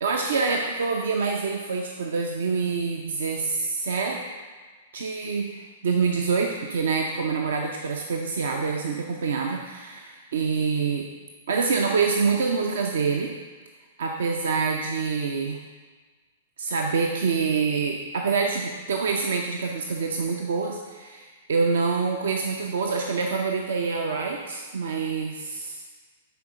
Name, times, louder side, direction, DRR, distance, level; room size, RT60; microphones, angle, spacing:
voice 1, 0.0-4.2 4.9-11.1 11.5-13.3 14.0-15.6 16.6-25.8, right 5 dB, 60° right, 2 dB, 0.5 m, -26 dB
10.0 x 4.2 x 3.7 m, 1.4 s
figure-of-eight pair, 105°, 0 cm